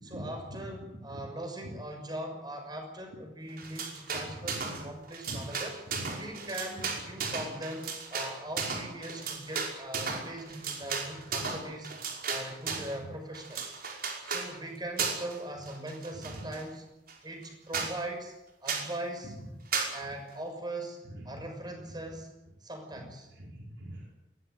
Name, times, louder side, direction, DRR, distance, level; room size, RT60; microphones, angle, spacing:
voice 1, 0.0-5.7 6.2-11.9 12.3-13.8 14.2-16.8 17.2-18.3 18.6-19.3 19.9-21.0 21.2-22.3 22.6-23.3, right 1 dB, 25° right, 4 dB, 6.4 m, -40 dB
voice 2, 0.8-1.2 4.1-4.8 5.3-5.4 5.9-6.1 12.7-13.1 16.1-16.3 17.7-17.8 21.0-21.3 22.9-24.1, right 1 dB, 85° right, -2 dB, 4.7 m, -44 dB
sound 1, 3.6-4.8 5.1-12.9 13.3-14.5 15.0-15.4 15.7-16.6 17.1-17.2 17.4-17.5 17.7-17.9 18.7-18.9 19.7-19.9, right 5 dB, 55° right, 5.3 m, -35 dB
23.0 x 17.5 x 9.3 m, 0.92 s
head